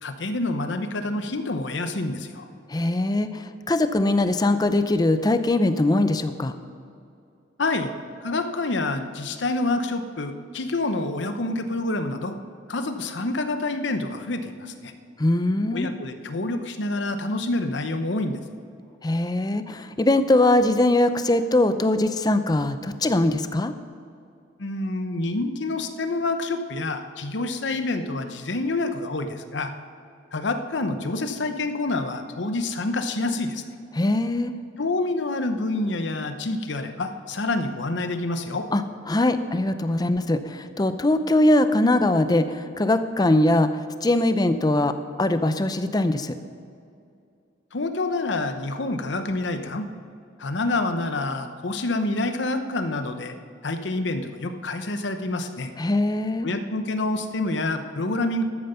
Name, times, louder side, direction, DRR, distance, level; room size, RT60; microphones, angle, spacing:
voice 1, 0.0-2.5 7.6-7.9 8.2-12.3 12.7-14.9 15.7-18.4 24.6-29.7 30.3-33.6 34.8-38.6 47.7-49.9 50.4-53.3 53.6-55.7 56.4-58.4, left 2 dB, 70° left, 8 dB, 0.9 m, -27 dB
voice 2, 2.7-6.5 15.2-15.9 19.0-23.7 33.9-34.5 38.7-46.4 55.8-56.5, left 1 dB, 20° left, 10 dB, 0.5 m, -22 dB
13.5 x 9.0 x 5.6 m, 2.4 s
head